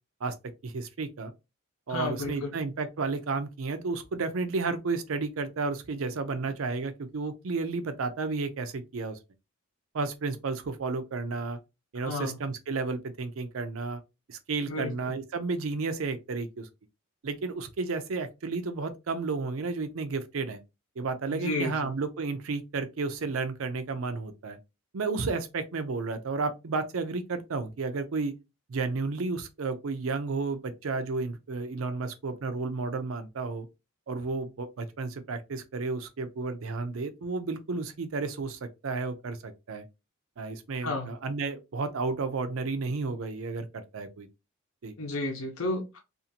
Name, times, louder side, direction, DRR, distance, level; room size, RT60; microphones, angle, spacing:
voice 1, 0.6-1.3 1.9-9.2 9.9-11.6 11.9-14.0 14.3-16.7 17.2-20.6 21.0-24.6 24.9-28.3 28.7-33.7 34.1-39.8 40.4-44.3 44.8-44.9, right 4 dB, 75° right, 0.5 m, -32 dB
voice 2, 1.9-2.5 12.0-12.3 14.7-14.9 21.3-21.7 40.8-41.1 45.0-46.0, left 2 dB, 80° left, 0.8 m, -31 dB
2.6 x 2.5 x 2.7 m
head